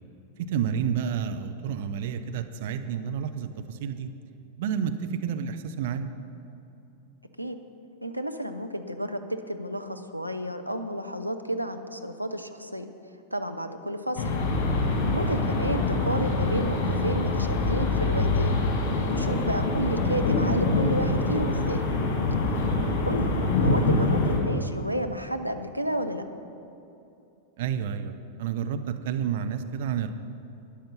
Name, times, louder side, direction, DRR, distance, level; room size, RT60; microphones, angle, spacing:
voice 1, 0.4-4.1 4.6-6.1 15.5-15.6 27.6-28.1 28.4-30.1, right 8 dB, 55° right, 8 dB, 0.7 m, -30 dB
voice 2, 8.0-12.9 13.3-14.2 15.1-18.6 19.1-21.8 23.1-26.2, equal, 90° right, 6 dB, 0.7 m, -31 dB
sound 1, 14.2-24.4, left 2 dB, 50° left, 2.7 m, -25 dB
13.0 x 10.5 x 5.6 m, 2.7 s
figure-of-eight pair, 90°, 0 cm